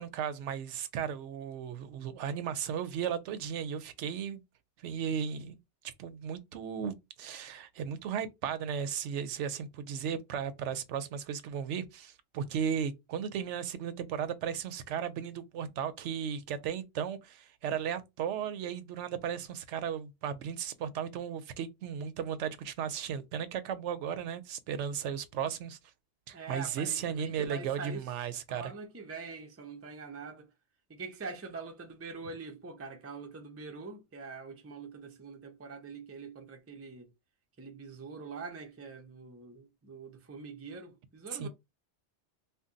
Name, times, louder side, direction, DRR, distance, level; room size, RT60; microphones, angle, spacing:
voice 1, 0.0-4.4 4.8-5.6 6.0-25.8 26.3-28.7 41.4-41.5, right 8 dB, 85° right, 0.9 m, -35 dB
voice 2, 26.3-28.1 28.5-30.5 30.9-37.1 37.6-41.5, right 4 dB, 20° right, 0.4 m, -44 dB
2.6 x 2.2 x 3.7 m
omnidirectional pair, 1.2 m